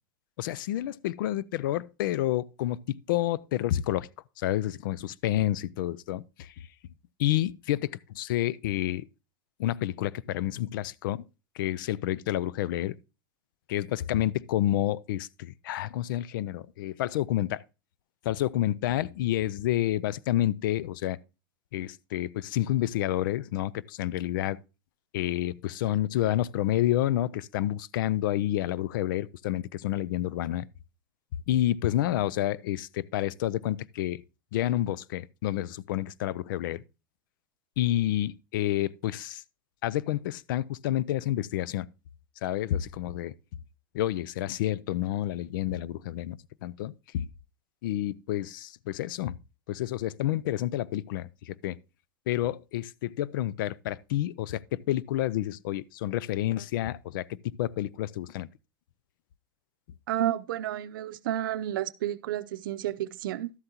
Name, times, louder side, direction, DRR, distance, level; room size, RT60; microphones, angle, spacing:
voice 1, 0.4-4.1 4.4-6.5 7.2-9.1 9.6-11.2 11.6-13.0 13.7-17.6 18.2-21.2 21.7-24.6 25.1-30.7 31.5-34.2 34.5-36.8 37.8-39.4 39.8-41.9 42.4-43.3 43.9-47.3 47.8-49.4 49.7-51.8 52.3-58.5, left 13 dB, 75° left, 0.4 m, -29 dB
voice 2, 60.1-63.5, right 12 dB, 80° right, 0.6 m, -31 dB
12.5 x 7.8 x 2.9 m
supercardioid pair, 130°, 11 cm